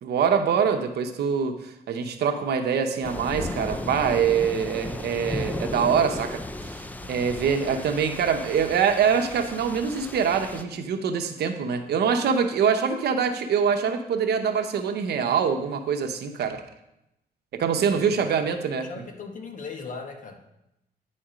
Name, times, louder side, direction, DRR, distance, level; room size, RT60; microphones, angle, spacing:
voice 1, 0.0-6.8 7.1-16.6 17.5-18.9, right 6 dB, 75° right, 7 dB, 0.8 m, -24 dB
sound 1, 3.0-10.6, left 1 dB, 10° left, 0.4 m, -35 dB
voice 2, 17.9-20.4, left 4 dB, 50° left, 4 dB, 1.1 m, -39 dB
9.7 x 4.2 x 5.0 m, 0.85 s
cardioid pair, 110°, 17 cm